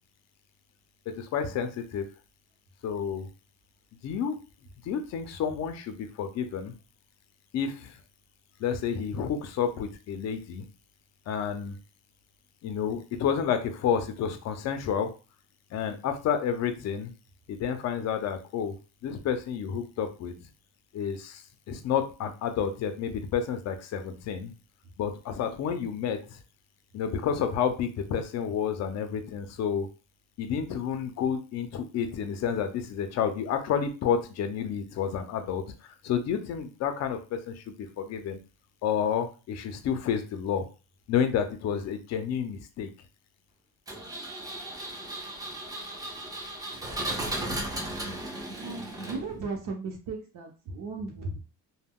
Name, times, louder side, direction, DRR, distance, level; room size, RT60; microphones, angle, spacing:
voice 1, 1.1-2.1 2.8-3.3 4.0-4.4 4.8-6.7 7.5-8.0 8.6-10.7 11.3-11.8 12.6-15.1 15.7-17.1 17.5-18.8 19.0-20.5 20.9-24.5 25.0-26.4 26.9-29.9 30.4-38.4 38.8-40.7 41.1-42.9, left 7 dB, 50° left, 8 dB, 0.5 m, -30 dB
Engine, 43.9-49.5, right 1 dB, 10° right, 0.4 m, -36 dB
voice 2, 48.5-51.4, right 3 dB, 65° right, 0 dB, 0.7 m, -36 dB
2.2 x 2.1 x 3.5 m, 0.33 s
cardioid pair, 155°, 34 cm